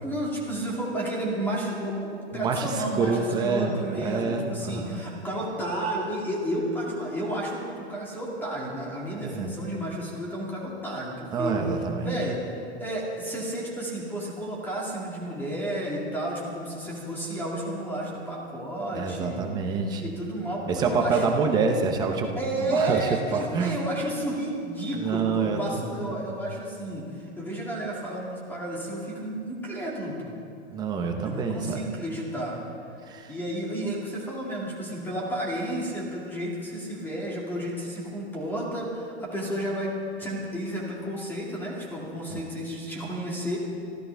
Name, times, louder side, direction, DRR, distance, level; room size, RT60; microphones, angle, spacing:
voice 1, 0.0-11.6 12.0-19.5 20.0-21.4 22.3-30.4 31.2-32.6 33.3-43.6, right 1 dB, 5° left, -3 dB, 2.1 m, -32 dB
voice 2, 2.3-5.0 9.1-9.5 11.3-12.2 18.8-20.1 20.7-23.8 25.0-26.3 30.7-31.9 33.1-33.3 42.3-42.4, right 4 dB, 10° right, 4 dB, 0.7 m, -27 dB
25.0 x 14.0 x 3.4 m, 2.5 s
supercardioid pair, 165°, 32 cm